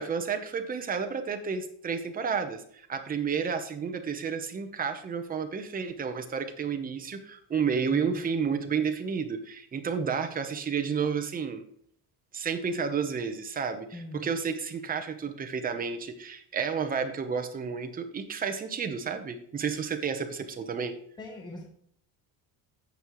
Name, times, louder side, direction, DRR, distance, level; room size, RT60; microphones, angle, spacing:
voice 1, 0.0-11.6 12.3-20.9, right 6 dB, 20° right, 6 dB, 0.9 m, -31 dB
voice 2, 7.9-8.2 8.5-8.7 13.9-14.3 21.2-21.6, left 2 dB, 10° left, 0 dB, 1.0 m, -41 dB
15.5 x 5.5 x 3.1 m, 0.63 s
cardioid pair, 160°, 41 cm